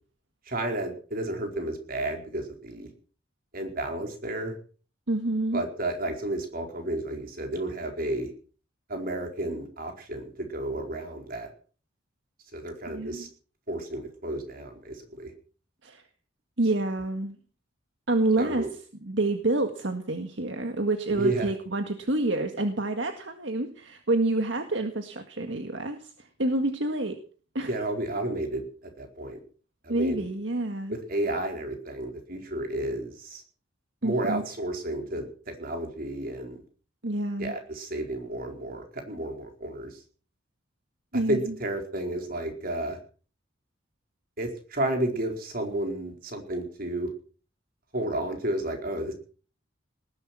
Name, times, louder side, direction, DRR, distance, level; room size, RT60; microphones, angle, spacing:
voice 1, 0.5-2.9 3.5-4.5 5.5-8.3 8.9-11.5 12.5-13.3 13.7-15.3 18.4-18.7 21.1-21.5 27.7-29.4 29.8-30.2 30.9-33.4 34.0-36.6 37.4-40.0 41.3-43.0 44.4-47.1 47.9-49.1, right 1 dB, 50° right, 4 dB, 4.7 m, -32 dB
voice 2, 5.1-5.6 12.9-13.3 15.8-16.0 16.6-17.4 18.1-18.6 19.0-27.2 27.6-27.7 29.9-30.9 34.0-34.4 37.0-37.5 41.1-41.4, right 2 dB, 70° right, 6 dB, 1.9 m, -28 dB
19.5 x 11.5 x 6.2 m, 0.42 s
head